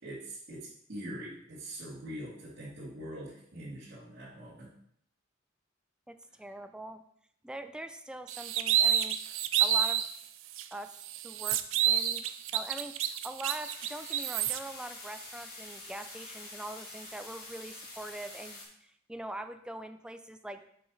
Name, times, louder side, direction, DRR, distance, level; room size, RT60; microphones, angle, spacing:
voice 1, 0.0-4.7, right 1 dB, 60° right, -13 dB, 2.5 m, -43 dB
voice 2, 6.1-7.0 7.4-9.3 9.6-10.0 10.7-12.3 12.5-20.7, right 1 dB, 5° right, 8 dB, 0.4 m, -43 dB
sound 1, 8.3-10.1 10.5-10.6 11.0-14.6, right 10 dB, 85° right, 0.4 m, -29 dB
sound 2, 13.6-18.7, left 2 dB, 55° left, 2.4 m, -46 dB
6.9 x 5.0 x 3.9 m, 0.69 s
head